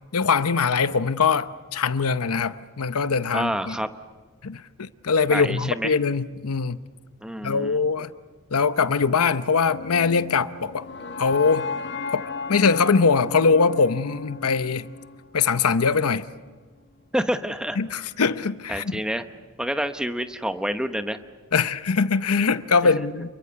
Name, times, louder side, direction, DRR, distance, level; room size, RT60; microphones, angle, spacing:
voice 1, 0.1-3.8 4.4-6.8 7.4-8.1 8.5-10.9 11.2-11.7 12.1-14.9 15.3-16.3 17.8-19.0 21.5-23.3, left 5 dB, 85° left, 0.8 m, -22 dB
voice 2, 3.3-3.9 5.3-5.9 7.2-7.8 17.1-17.8 18.7-19.2 19.6-21.2 23.0-23.1, equal, 5° right, 0.9 m, -27 dB
sound 1, 9.6-15.7, left 4 dB, 55° left, 1.4 m, -35 dB
28.5 x 22.5 x 6.9 m
head